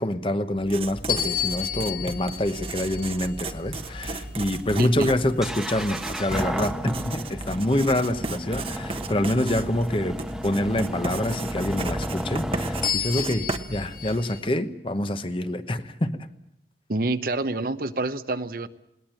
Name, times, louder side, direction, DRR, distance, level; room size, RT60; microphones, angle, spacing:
voice 1, 0.0-16.2, left 1 dB, 30° left, 1.0 m, -26 dB
Writing, 0.6-14.4, right 3 dB, 30° right, 1.1 m, -35 dB
sound 1, 1.1-5.8 6.4-6.6 12.8-14.4, left 9 dB, 50° left, 1.5 m, -33 dB
sound 2, 3.7-12.9, equal, 5° right, 1.1 m, -33 dB
voice 2, 4.8-5.1 16.9-18.7, right 2 dB, 55° right, 0.9 m, -27 dB
21.0 x 18.5 x 9.0 m
head